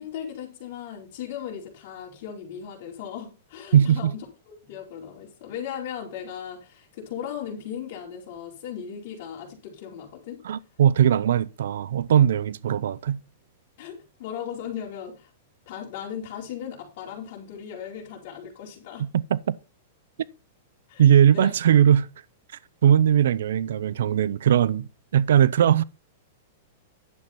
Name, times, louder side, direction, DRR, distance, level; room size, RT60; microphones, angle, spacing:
voice 1, 0.0-10.4 13.8-15.3 15.7-19.1 20.9-21.0 21.3-21.5, left 8 dB, 40° left, 4.2 m, -37 dB
voice 2, 3.7-4.1 10.4-13.2 19.0-19.5 21.0-22.1 22.8-25.8, right 9 dB, 75° right, 0.6 m, -20 dB
11.0 x 7.7 x 4.3 m
supercardioid pair, 175°, 0 cm